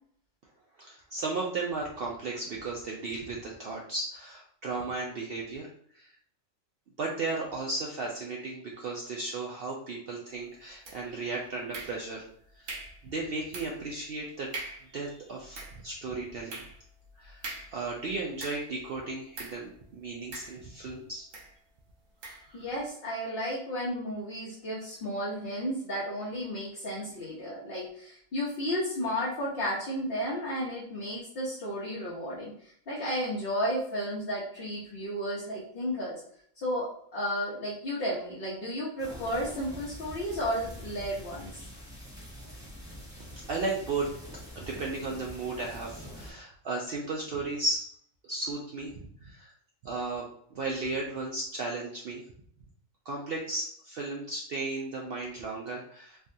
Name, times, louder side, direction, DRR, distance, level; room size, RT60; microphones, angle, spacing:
voice 1, 0.8-5.7 5.9-6.1 7.0-12.2 12.6-12.7 13.0-14.5 14.9-16.6 17.2-17.4 17.7-21.3 22.3-22.7 43.4-44.1 44.6-47.9 48.2-49.5 49.8-50.3 50.5-52.2 53.1-56.2, right 3 dB, 65° right, -2 dB, 0.6 m, -35 dB
sound 1, 10.8-11.3 11.7-12.3 12.7-13.0 13.5-13.9 14.2-14.3 14.5-14.9 15.4-18.8 19.3-19.7 20.3-20.9 21.3-21.6 22.2-22.5, right 2 dB, 80° right, 1.2 m, -42 dB
voice 2, 22.5-36.2 36.6-41.7, equal, 50° left, -8 dB, 1.0 m, -33 dB
sound 2, 39.0-46.3, equal, 5° right, 0.3 m, -45 dB
3.4 x 2.3 x 2.6 m, 0.63 s
omnidirectional pair, 1.4 m